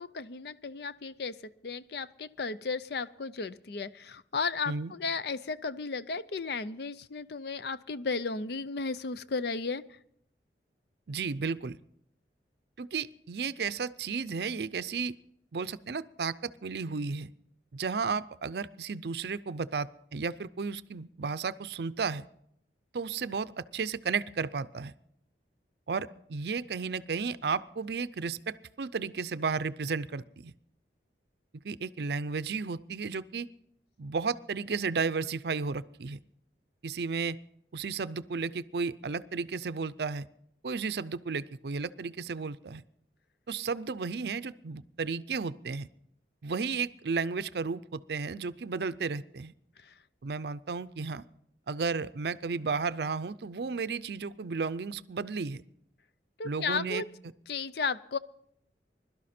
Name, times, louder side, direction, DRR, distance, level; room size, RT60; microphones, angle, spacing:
voice 1, 0.0-1.4 1.6-9.8 49.8-49.9 56.4-57.1 57.5-58.2, left 4 dB, 65° left, 15 dB, 0.5 m, -34 dB
voice 2, 11.1-11.8 12.8-15.2 15.5-17.3 17.7-22.3 22.9-24.9 25.9-30.5 31.6-33.5 34.0-36.2 36.8-37.4 37.7-40.3 40.6-42.8 43.5-45.9 46.4-49.5 50.2-51.2 51.7-55.6 56.4-57.0, right 5 dB, 65° right, 15 dB, 0.5 m, -33 dB
22.0 x 12.0 x 4.3 m, 0.72 s
head